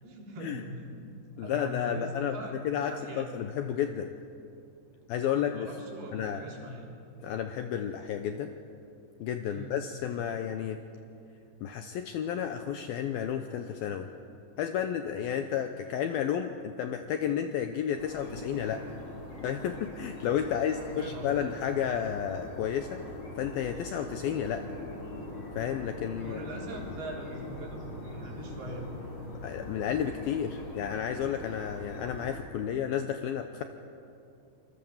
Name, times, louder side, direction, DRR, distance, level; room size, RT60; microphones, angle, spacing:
voice 1, 0.0-2.6 2.8-3.3 5.2-6.9 9.5-9.8 20.5-21.4 26.2-28.9, equal, 60° right, -1 dB, 5.4 m, -41 dB
voice 2, 1.4-4.1 5.1-5.7 6.1-6.4 7.2-8.5 9.2-10.8 11.6-14.1 14.6-18.8 19.4-23.0 23.4-24.6 25.6-26.4 29.4-33.6, left 9 dB, 80° left, 7 dB, 2.2 m, -32 dB
sound 1, 18.0-32.4, left 1 dB, 30° left, 3.9 m, -42 dB
26.5 x 22.0 x 7.3 m, 2.6 s
omnidirectional pair, 5.1 m